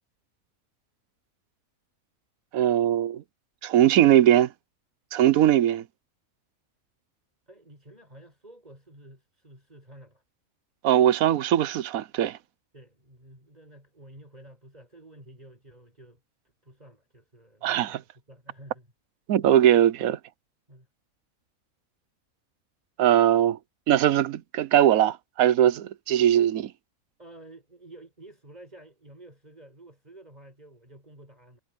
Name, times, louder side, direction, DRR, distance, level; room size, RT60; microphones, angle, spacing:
voice 1, 2.5-3.2 3.6-4.5 5.1-5.8 10.8-12.4 17.6-18.0 19.3-20.2 23.0-23.6 23.9-26.7, right 11 dB, 90° right, 1.2 m, -20 dB
voice 2, 7.5-10.2 12.7-16.2 16.6-18.0 18.3-18.9 20.7-20.9 27.2-31.6, right 1 dB, 30° right, 6.5 m, -50 dB
omnidirectional pair, 1.4 m